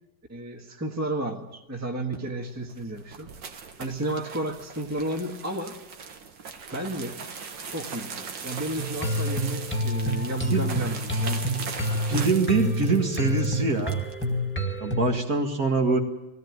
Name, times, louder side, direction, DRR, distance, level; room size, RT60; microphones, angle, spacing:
voice 1, 0.3-3.3 3.8-5.8 6.7-7.2 7.7-11.4, right 1 dB, 10° right, 2 dB, 1.4 m, -32 dB
sound 1, 2.6-14.3, right 5 dB, 70° right, 2.1 m, -39 dB
sound 2, 8.8-15.2, equal, 5° left, 1.7 m, -28 dB
voice 2, 12.1-14.0 14.8-16.0, right 4 dB, 50° right, 3 dB, 2.3 m, -24 dB
19.5 x 17.0 x 9.5 m, 0.98 s
omnidirectional pair, 2.1 m